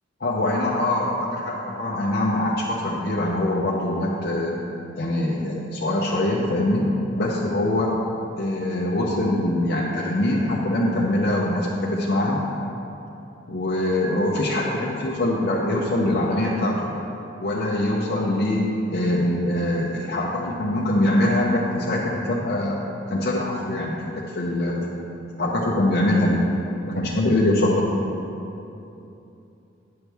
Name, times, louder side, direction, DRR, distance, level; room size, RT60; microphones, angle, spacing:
voice 1, 0.2-4.5 5.0-6.9 7.2-8.0 8.4-12.4 13.5-16.9 17.4-22.8 23.1-24.9 25.4-26.5 26.9-27.8, left 1 dB, 55° left, -4 dB, 0.7 m, -23 dB
9.4 x 6.1 x 3.4 m, 2.8 s
head